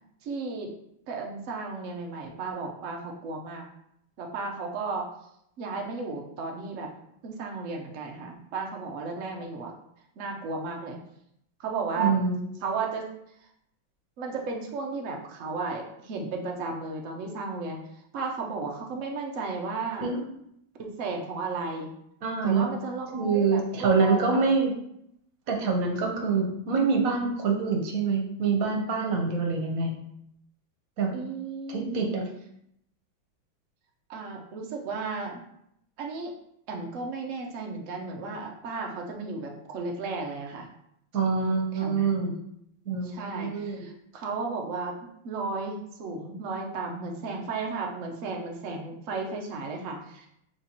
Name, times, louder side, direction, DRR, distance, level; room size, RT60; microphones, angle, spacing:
voice 1, 0.2-0.7 1.1-3.7 4.2-5.1 5.6-6.9 7.2-9.7 10.2-11.0 11.6-12.1 12.6-13.1 14.2-17.8 18.1-20.1 20.8-21.9 22.4-24.4 31.1-32.0 34.1-35.4 36.0-36.3 36.7-40.7 41.7-42.3 43.0-45.0 45.2-50.3, right 4 dB, 90° right, 1 dB, 0.6 m, -34 dB
voice 2, 12.0-12.5 20.0-20.2 22.2-22.7 23.1-24.7 25.5-29.9 31.0-31.1 31.7-32.3 41.1-42.3 42.9-43.9, right 4 dB, 55° right, 1 dB, 1.0 m, -25 dB
6.1 x 2.9 x 2.9 m, 0.75 s
omnidirectional pair, 2.2 m